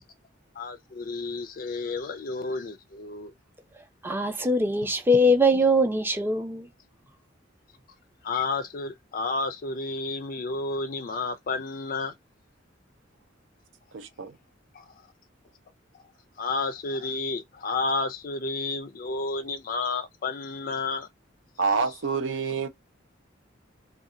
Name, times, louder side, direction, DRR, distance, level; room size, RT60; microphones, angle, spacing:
voice 1, 0.6-3.3 8.2-12.1 14.7-15.0 16.4-21.1, left 3 dB, 45° left, 0.4 m, -31 dB
voice 2, 4.0-6.7, equal, 10° right, 0.5 m, -22 dB
voice 3, 13.9-14.3 21.6-22.7, right 5 dB, 70° right, 0.6 m, -27 dB
2.6 x 2.3 x 3.7 m
head